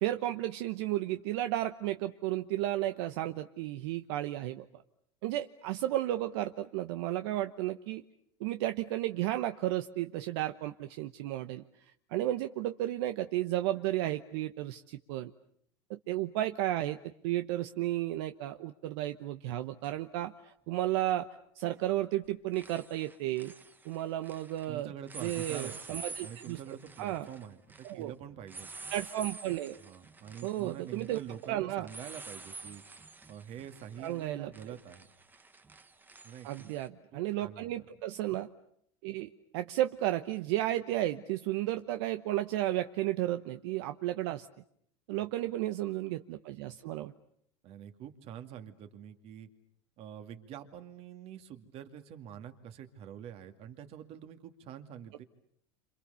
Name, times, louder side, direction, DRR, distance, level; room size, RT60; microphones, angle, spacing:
voice 1, 0.0-4.8 5.2-8.0 8.4-11.6 12.1-15.3 15.9-17.0 17.2-21.3 21.6-23.5 23.8-24.9 25.2-26.6 27.0-27.3 27.8-28.1 28.9-29.8 30.4-31.2 31.5-31.9 34.0-34.8 36.4-38.5 39.0-44.5 45.1-47.1, right 14 dB, 70° right, 9 dB, 1.1 m, -33 dB
sound 1, 19.8-19.9 21.7-22.0 22.2-24.7 25.1-36.9, right 3 dB, 15° right, 1.4 m, -49 dB
voice 2, 24.7-28.7 29.8-32.8 33.3-35.1 36.2-36.7 37.1-37.9 47.6-49.5 50.0-55.2, right 9 dB, 45° right, 8 dB, 2.4 m, -46 dB
29.0 x 27.0 x 7.0 m, 0.71 s
supercardioid pair, 130°, 14 cm